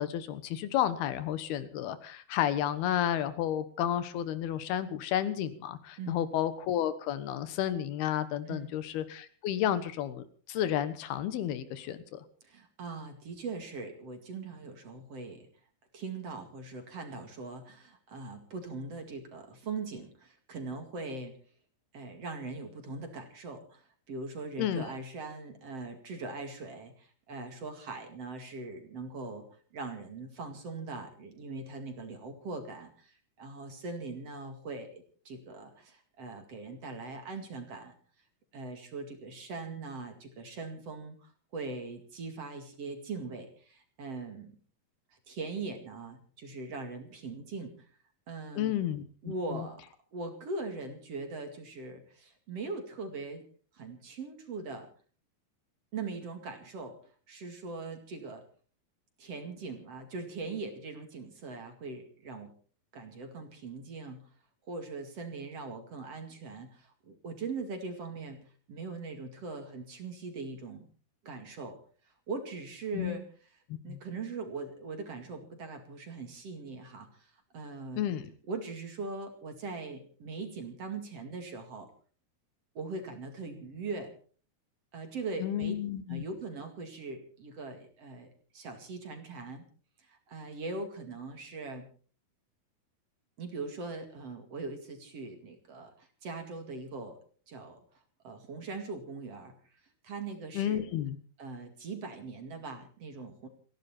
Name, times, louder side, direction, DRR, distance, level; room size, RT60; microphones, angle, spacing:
voice 1, 0.0-12.2 24.6-24.9 48.6-49.7 72.9-73.2 73.9-74.0 77.9-78.3 85.4-86.2 100.5-101.2, left 11 dB, 85° left, 13 dB, 3.2 m, -32 dB
voice 2, 8.5-8.8 12.4-15.5 15.9-21.4 21.9-29.5 29.7-37.9 38.5-44.5 45.3-47.9 48.3-48.7 49.2-49.8 50.1-53.4 53.7-54.9 55.9-57.0 57.3-58.4 59.2-62.5 62.9-64.2 64.7-70.8 71.2-71.8 72.3-73.2 73.8-78.1 78.5-81.9 82.7-84.1 84.9-85.7 86.1-89.6 90.0-91.9 93.4-97.2 97.5-97.8 98.2-99.7 100.0-100.8 101.4-103.5, right 3 dB, 45° right, 6 dB, 2.9 m, -41 dB
29.0 x 11.0 x 4.4 m, 0.42 s
omnidirectional pair, 4.4 m